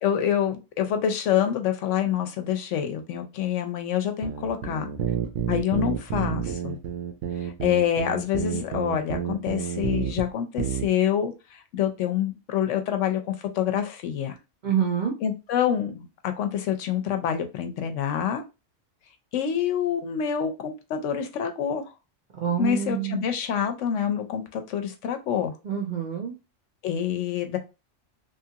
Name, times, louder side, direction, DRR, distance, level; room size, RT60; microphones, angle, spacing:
voice 1, 0.0-4.9 5.5-6.8 7.4-14.4 15.2-18.4 19.3-21.9 22.6-25.5 26.8-27.6, left 9 dB, 80° left, 0.9 m, -27 dB
sound 1, 4.2-10.3 10.6-10.9, right 8 dB, 90° right, 1.0 m, -29 dB
voice 2, 14.6-15.1 22.4-23.2 25.6-26.3, right 8 dB, 50° right, 0.6 m, -26 dB
3.1 x 2.4 x 2.7 m
omnidirectional pair, 1.3 m